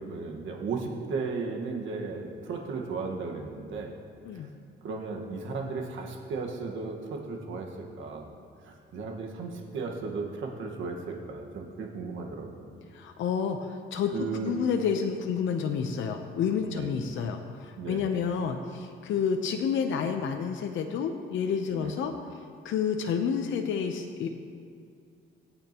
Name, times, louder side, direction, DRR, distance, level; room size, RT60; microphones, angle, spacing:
voice 1, 0.0-3.9 4.3-4.5 4.8-8.3 8.6-12.7 14.1-14.5 16.7-16.9 17.8-18.1 21.7-21.9, right 4 dB, 75° right, 1 dB, 1.5 m, -35 dB
voice 2, 12.9-22.4 22.6-24.3, left 6 dB, 75° left, 5 dB, 0.7 m, -29 dB
19.5 x 8.9 x 3.0 m, 2.4 s
cardioid pair, 90°, 20 cm